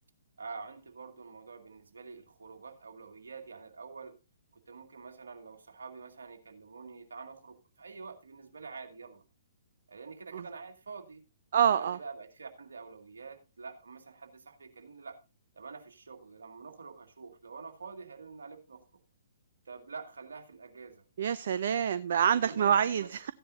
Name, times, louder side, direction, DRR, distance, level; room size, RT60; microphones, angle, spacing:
voice 1, 0.4-4.2 4.7-9.2 9.9-11.2 11.7-15.2 15.5-18.9 19.7-21.0 22.2-23.1, right 4 dB, 70° right, 2.1 m, -46 dB
voice 2, 11.5-12.0 21.2-23.3, right 8 dB, 55° right, 0.5 m, -26 dB
14.5 x 10.0 x 2.7 m
figure-of-eight pair, 125°, 0 cm